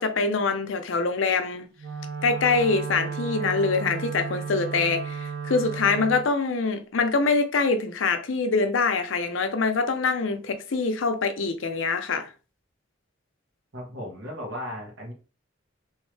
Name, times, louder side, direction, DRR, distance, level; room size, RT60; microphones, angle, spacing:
voice 1, 0.0-1.7 2.2-12.3, left 4 dB, 80° left, 0.6 m, -24 dB
Wind instrument woodwind instrument, 1.8-6.3, right 6 dB, 60° right, 0.6 m, -33 dB
voice 2, 13.7-15.1, equal, 85° right, 1.9 m, -36 dB
3.5 x 3.2 x 3.2 m
head